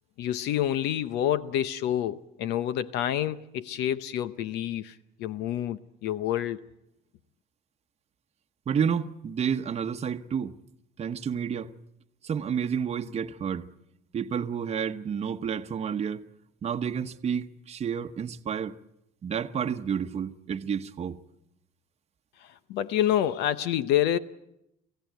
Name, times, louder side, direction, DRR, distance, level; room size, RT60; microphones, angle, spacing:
voice 1, 0.2-6.7 22.4-24.2, left 11 dB, 85° left, 0.8 m, -28 dB
voice 2, 8.7-10.6 11.0-11.7 12.2-13.7 14.1-16.2 16.6-18.8 19.2-21.2, right 7 dB, 40° right, 0.9 m, -30 dB
24.5 x 15.5 x 9.2 m
cardioid pair, 110°, 17 cm